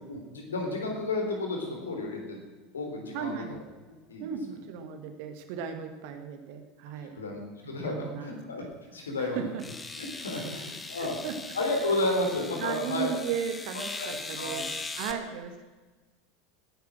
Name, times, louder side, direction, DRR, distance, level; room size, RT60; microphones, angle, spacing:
voice 1, 0.1-2.4 2.7-3.6 4.1-4.3 7.2-8.6 8.9-9.5 10.0-11.1 11.5-13.1 13.9-14.6 15.0-15.2, left 2 dB, 75° left, 2 dB, 3.6 m, -32 dB
voice 2, 3.1-3.6 4.2-7.1 7.6-8.3 8.6-8.7 9.2-9.6 10.3-10.5 11.0-11.4 12.6-14.7 15.0-15.6, right 8 dB, 55° right, 7 dB, 2.0 m, -36 dB
sound 1, 8.7-8.8 9.6-15.1, left 3 dB, 15° left, 1.6 m, -40 dB
18.0 x 10.5 x 6.2 m, 1.3 s
figure-of-eight pair, 80°, 0 cm